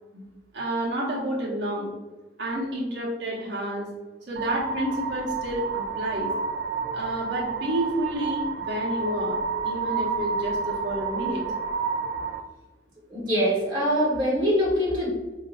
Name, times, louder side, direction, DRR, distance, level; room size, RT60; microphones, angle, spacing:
voice 1, 0.5-1.9 2.4-3.9 4.3-6.3 6.9-9.4 9.6-11.4, right 1 dB, 80° right, -4 dB, 0.9 m, -30 dB
sound 1, 4.4-12.4, right 5 dB, 60° right, 0.3 m, -30 dB
voice 2, 13.1-15.1, equal, 25° right, -6 dB, 1.3 m, -23 dB
4.7 x 2.6 x 2.5 m, 1.2 s
head